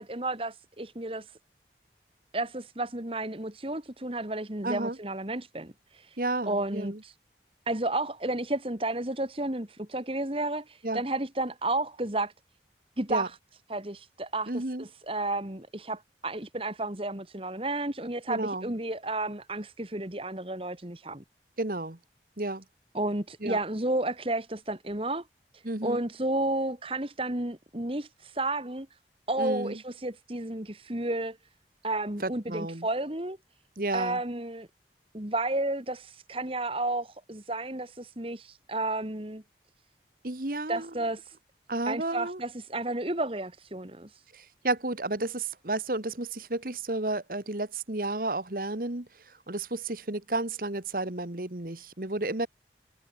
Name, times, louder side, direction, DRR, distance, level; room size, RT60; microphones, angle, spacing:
voice 1, 0.0-1.4 2.3-6.2 6.4-7.2 7.7-12.3 13.0-13.4 13.7-21.2 22.9-25.2 25.5-29.0 29.3-31.4 31.8-33.4 33.9-34.7 35.1-39.4 40.7-41.4 41.9-44.3, right 2 dB, 30° right, 2.1 m, -32 dB
voice 2, 4.6-5.0 6.2-7.0 10.8-11.0 13.1-13.3 14.5-14.8 18.3-18.7 21.6-22.0 22.4-22.6 23.4-23.6 25.6-26.0 29.4-29.8 32.2-32.9 33.8-34.2 40.2-40.9 41.7-42.4 44.3-49.1 49.5-52.5, right 2 dB, 50° right, 1.7 m, -32 dB
head